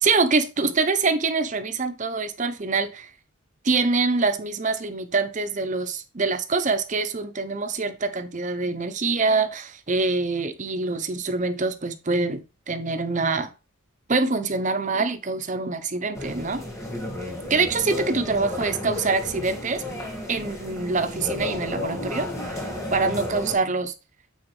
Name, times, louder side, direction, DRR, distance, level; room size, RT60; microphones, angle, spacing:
voice 1, 0.0-3.1 3.6-13.5 14.1-16.6 17.5-19.8 20.3-23.9, right 3 dB, 35° right, 0.7 m, -25 dB
sound 1, 16.1-23.6, left 1 dB, 15° left, 1.8 m, -33 dB
8.8 x 4.3 x 3.2 m
head